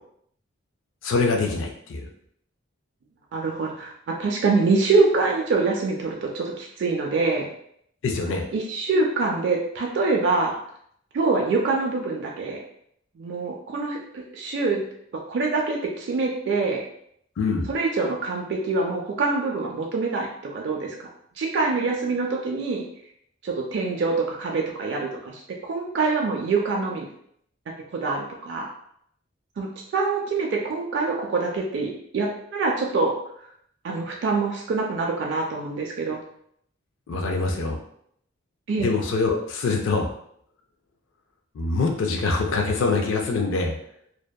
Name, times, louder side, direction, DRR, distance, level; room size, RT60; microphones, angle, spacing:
voice 1, 1.0-2.0 8.0-8.4 17.4-17.7 37.1-37.8 38.8-40.1 41.6-43.7, left 3 dB, 70° left, 2 dB, 0.4 m, -24 dB
voice 2, 3.3-7.5 8.5-10.6 11.1-12.6 13.2-14.8 15.3-16.8 17.7-21.1 21.4-22.8 23.4-27.1 27.9-28.7 29.6-29.7 29.9-33.1 33.4-33.5 33.8-36.2 38.7-38.9, right 3 dB, 60° right, 0 dB, 0.3 m, -25 dB
2.6 x 2.2 x 2.2 m, 0.69 s
head